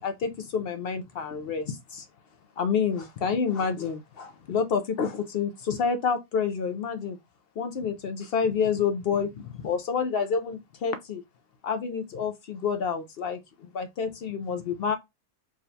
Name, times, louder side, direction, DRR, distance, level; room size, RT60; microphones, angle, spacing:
voice 1, 0.0-2.1 2.6-7.2 7.6-11.2 11.6-14.9, left 6 dB, 70° left, 0.5 m, -28 dB
4.7 x 2.2 x 2.6 m
omnidirectional pair, 1.5 m